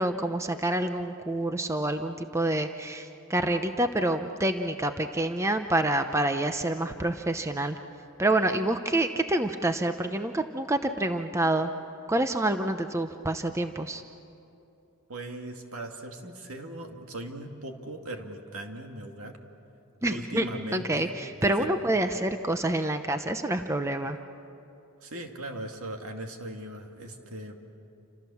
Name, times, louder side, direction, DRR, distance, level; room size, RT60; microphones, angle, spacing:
voice 1, 0.0-7.8 8.2-11.7 12.1-14.0 20.0-20.5 20.7-24.2, right 1 dB, 15° right, 7 dB, 0.7 m, -27 dB
voice 2, 15.1-19.3 20.1-21.1 21.4-21.7 25.0-27.6, right 1 dB, 70° right, 3 dB, 2.4 m, -39 dB
29.0 x 26.5 x 7.1 m, 2.7 s
head